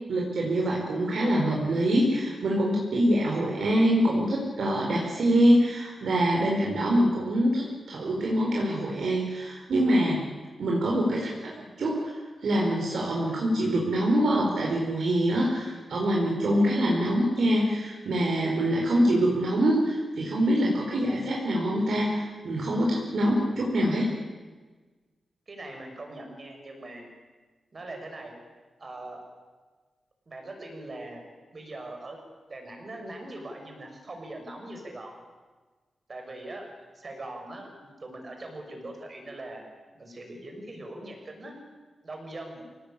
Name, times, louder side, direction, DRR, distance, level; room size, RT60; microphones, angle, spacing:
voice 1, 0.1-10.2 10.6-24.1, equal, 70° right, -2 dB, 4.9 m, -25 dB
voice 2, 16.3-16.9 25.5-27.1 27.7-28.3 28.8-29.2 30.3-31.2 31.5-32.2 32.5-35.2 36.1-36.7 36.9-39.7 39.9-41.5 42.0-42.6, right 1 dB, 35° right, 3 dB, 5.8 m, -41 dB
26.0 x 18.5 x 8.7 m, 1.4 s
wide cardioid pair, 150°, 0 cm